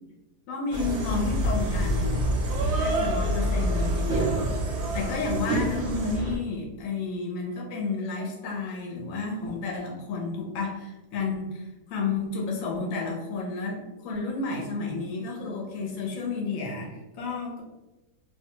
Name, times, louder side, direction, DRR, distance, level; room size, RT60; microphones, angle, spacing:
voice 1, 0.5-2.4 2.8-4.5 4.9-17.6, left 3 dB, 65° left, -1 dB, 1.0 m, -31 dB
sound 1, 0.7-6.4, right 1 dB, 65° right, 0.7 m, -26 dB
2.6 x 2.3 x 2.9 m, 1.1 s
omnidirectional pair, 1.7 m